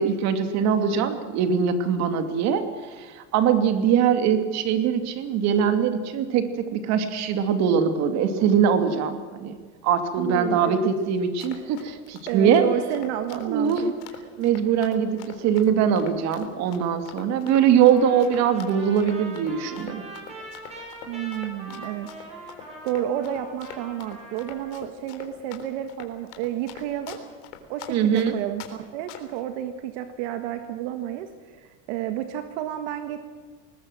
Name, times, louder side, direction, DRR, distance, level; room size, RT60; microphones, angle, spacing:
voice 1, 0.0-2.6 3.0-9.6 9.8-12.6 13.4-13.8 14.4-20.0 27.9-28.3, right 7 dB, 50° right, 8 dB, 2.6 m, -22 dB
voice 2, 10.2-10.9 12.3-13.9 21.1-22.1 22.8-27.2 27.7-33.2, right 11 dB, 70° right, 8 dB, 1.8 m, -31 dB
Run, 11.2-28.7 29.1-29.4, left 12 dB, 75° left, 3.7 m, -43 dB
Trumpet, 17.8-24.9, right 2 dB, 20° right, 7.1 m, -42 dB
21.0 x 19.5 x 7.7 m, 1.5 s
cardioid pair, 155°, 35 cm